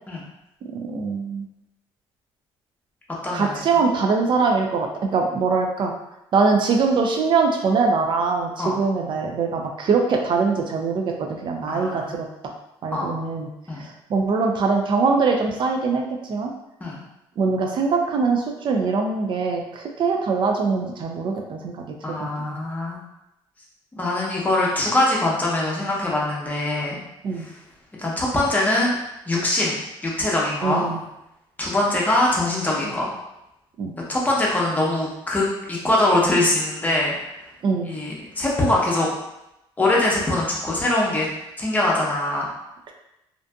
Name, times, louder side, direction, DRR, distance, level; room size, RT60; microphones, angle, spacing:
voice 1, 0.7-1.5 3.3-5.9 6.3-12.3 12.8-13.5 13.8-16.5 17.4-21.9 22.2-22.6 27.2-27.5 30.6-31.0 33.8-33.9 37.6-37.9, right 4 dB, 50° right, 2 dB, 0.4 m, -22 dB
voice 2, 3.2-3.9 8.6-8.8 11.7-12.2 12.9-13.1 13.7-13.8 16.8-17.0 22.0-23.0 24.0-27.0 27.4-27.6 28.0-29.0 29.3-30.9 31.6-33.1 34.1-37.1 37.9-39.1 39.8-41.3 41.6-42.5, left 1 dB, 15° left, -4 dB, 0.7 m, -23 dB
2.5 x 2.5 x 2.2 m, 0.88 s
cardioid pair, 105°, 10 cm